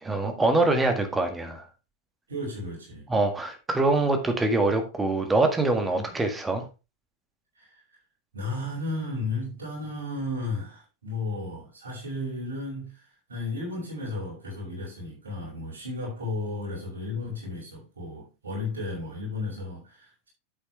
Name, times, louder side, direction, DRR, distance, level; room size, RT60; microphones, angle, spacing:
voice 1, 0.0-1.6 3.1-6.6, right 2 dB, 10° right, 1.7 m, -24 dB
voice 2, 2.3-3.1 5.9-6.1 7.6-7.7 8.3-20.3, left 2 dB, 70° right, 5.6 m, -34 dB
8.9 x 8.3 x 3.3 m
figure-of-eight pair, 90°, 0 cm